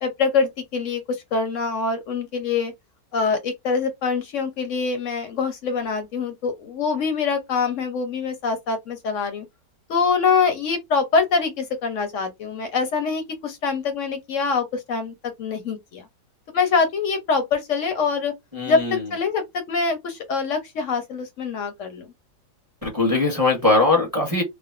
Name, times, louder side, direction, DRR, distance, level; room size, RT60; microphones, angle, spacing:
voice 1, 0.0-2.7 3.1-9.5 9.9-16.1 16.5-18.3 18.7-22.1, left 5 dB, 65° left, 0.8 m, -24 dB
voice 2, 18.5-19.0 22.8-24.4, left 2 dB, 15° right, 0.9 m, -20 dB
3.2 x 2.0 x 2.4 m
omnidirectional pair, 1.9 m